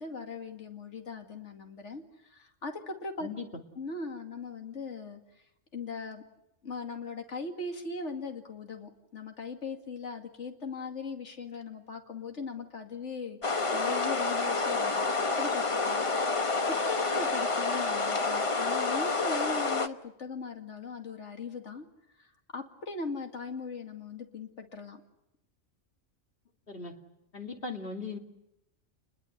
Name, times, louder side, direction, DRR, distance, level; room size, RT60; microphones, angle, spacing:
voice 1, 0.0-3.3 3.8-5.2 5.7-6.2 6.6-13.4 13.7-15.1 15.4-21.9 22.2-25.0, left 4 dB, 70° left, 4 dB, 2.6 m, -39 dB
sound 1, 13.4-19.9, left 3 dB, 30° left, 1.0 m, -28 dB
voice 2, 27.3-28.2, left 4 dB, 50° left, 3 dB, 3.0 m, -38 dB
29.5 x 21.5 x 8.1 m, 0.84 s
omnidirectional pair, 1.3 m